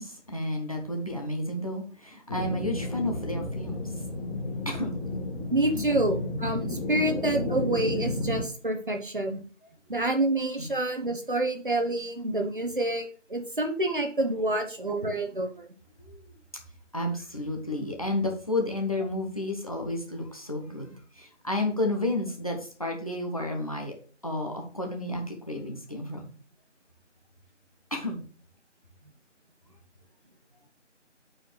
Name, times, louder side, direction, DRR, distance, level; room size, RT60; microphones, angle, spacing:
voice 1, 0.0-3.9 4.6-5.0 5.7-5.9 10.6-10.7 16.1-16.2 16.9-23.9 24.2-26.3 27.9-28.2, left 1 dB, 30° left, 3 dB, 0.9 m, -31 dB
sound 1, 2.3-8.4, left 2 dB, 10° left, 1.3 m, -32 dB
voice 2, 5.5-9.4 9.9-15.7, right 2 dB, 45° right, 4 dB, 1.0 m, -28 dB
8.2 x 4.4 x 3.3 m, 0.40 s
figure-of-eight pair, 165°, 37 cm